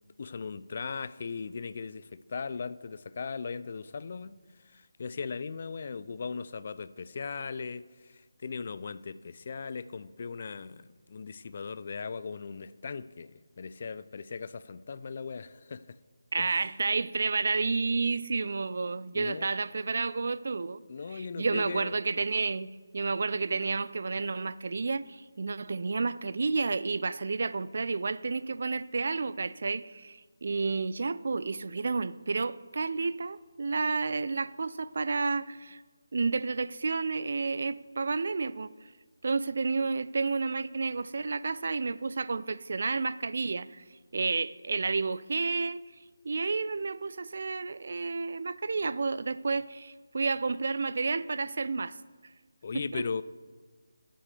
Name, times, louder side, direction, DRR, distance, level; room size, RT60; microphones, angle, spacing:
voice 1, 0.2-4.4 4.6-16.0 16.4-16.6 19.1-19.5 20.9-22.0 52.6-53.2, left 5 dB, 45° left, 0.4 m, -38 dB
voice 2, 16.3-20.8 21.1-35.8 36.1-38.7 39.2-43.8 44.1-45.8 46.2-52.0 52.7-53.0, right 4 dB, 55° right, 0.4 m, -31 dB
20.5 x 7.7 x 3.4 m
figure-of-eight pair, 160°, 0 cm